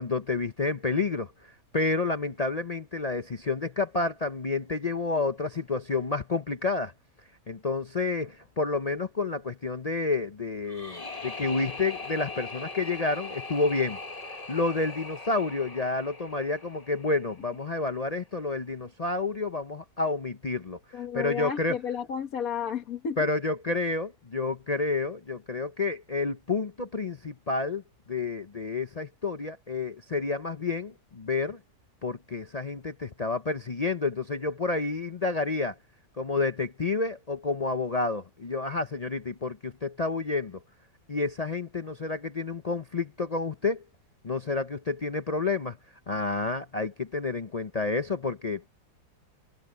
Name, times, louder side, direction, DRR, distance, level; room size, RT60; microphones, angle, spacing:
voice 1, 0.0-6.9 7.5-14.0 14.3-21.8 23.2-27.8 28.1-31.6 32.0-35.8 36.2-40.6 41.1-43.8 44.2-45.8 46.1-48.7, left 3 dB, 45° left, 0.5 m, -29 dB
sound 1, 10.7-17.6, left 3 dB, 25° left, 1.7 m, -40 dB
voice 2, 20.9-23.2, left 7 dB, 60° left, 1.8 m, -32 dB
omnidirectional pair, 1.7 m